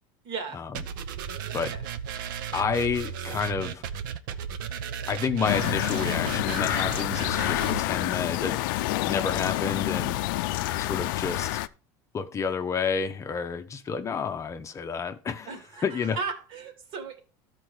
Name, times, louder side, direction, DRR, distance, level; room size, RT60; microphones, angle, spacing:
voice 1, 0.2-0.6 1.7-1.8 15.5-17.2, right 5 dB, 55° right, 2.4 m, -36 dB
sound 1, 0.7-7.8, right 8 dB, 85° right, 0.7 m, -35 dB
voice 2, 2.5-3.9 5.1-8.6 9.0-10.2 10.8-11.6 12.1-15.5 15.8-16.2, left 6 dB, 30° left, 0.8 m, -30 dB
sound 2, 5.4-11.7, left 17 dB, 80° left, 0.5 m, -28 dB
13.0 x 4.5 x 4.8 m
supercardioid pair, 110°, 11 cm